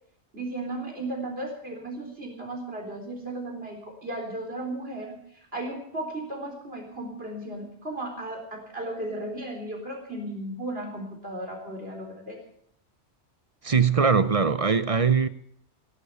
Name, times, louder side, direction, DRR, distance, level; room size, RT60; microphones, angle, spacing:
voice 1, 0.3-12.4, right 1 dB, 55° right, 4.3 m, -35 dB
voice 2, 13.6-15.3, right 5 dB, 40° right, 0.6 m, -21 dB
16.5 x 11.5 x 6.8 m
omnidirectional pair, 1.2 m